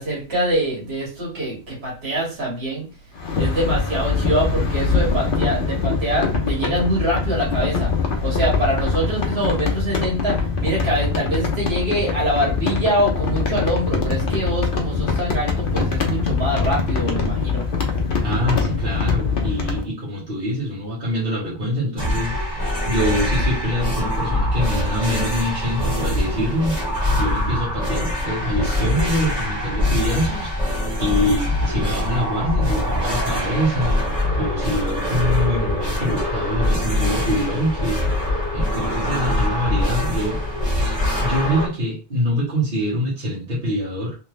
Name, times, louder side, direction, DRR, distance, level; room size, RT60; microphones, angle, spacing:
voice 1, 0.0-2.9 3.3-7.9 8.2-17.7, right 1 dB, 75° right, -3 dB, 1.9 m, -24 dB
sound 1, 3.1-19.8, left 4 dB, 55° left, 0.9 m, -23 dB
voice 2, 18.2-40.4 40.7-44.2, equal, 55° right, -7 dB, 1.6 m, -25 dB
sound 2, 22.0-41.7, left 1 dB, 30° right, 1.9 m, -23 dB
3.3 x 3.1 x 3.1 m, 0.33 s
omnidirectional pair, 1.1 m